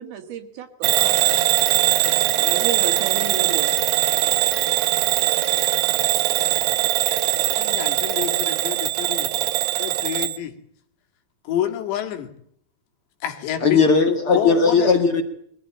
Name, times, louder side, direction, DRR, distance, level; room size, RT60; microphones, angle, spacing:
voice 1, 0.0-1.4 2.1-3.8, right 8 dB, 65° right, 6 dB, 3.6 m, -32 dB
Bell / Alarm, 0.8-10.4, right 15 dB, 80° right, 3.3 m, -21 dB
voice 2, 7.6-9.3 9.8-10.5 11.5-12.3 13.2-13.9 14.3-15.0, left 10 dB, 85° left, 5 dB, 4.3 m, -28 dB
voice 3, 13.6-15.2, left 4 dB, 45° left, 6 dB, 2.0 m, -17 dB
23.0 x 15.5 x 8.9 m, 0.66 s
omnidirectional pair, 4.9 m